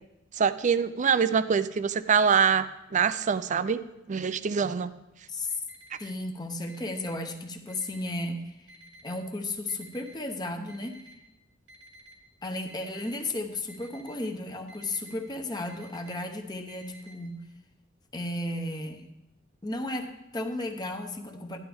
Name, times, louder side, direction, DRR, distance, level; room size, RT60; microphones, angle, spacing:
voice 1, 0.4-3.8 4.1-4.9, right 6 dB, 40° right, 14 dB, 0.4 m, -24 dB
voice 2, 5.3-5.6 6.0-8.7 9.0-11.0 12.4-17.4 18.1-19.1 19.6-21.6, left 2 dB, 20° left, 4 dB, 0.9 m, -34 dB
Alarm, 5.7-6.1 6.7-7.1 7.7-8.1 8.7-9.1 9.7-10.1 10.7-11.1 11.7-12.1 12.7-13.1 13.7-14.1 14.7-15.1 15.7-16.1 16.7-17.1, equal, 85° right, 2.5 m, -52 dB
12.5 x 10.5 x 3.5 m, 0.93 s
head